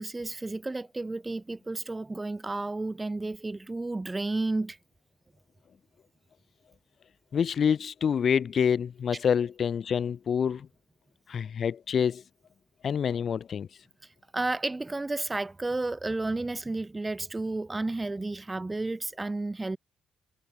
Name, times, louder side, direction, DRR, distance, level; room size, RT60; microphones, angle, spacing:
voice 1, 0.0-4.8 14.3-19.8, right 2 dB, 20° right, 0.9 m, -32 dB
voice 2, 7.3-10.7 11.3-12.2 12.8-13.7, left 7 dB, 55° left, 1.1 m, -27 dB
supercardioid pair, 50°, 0 cm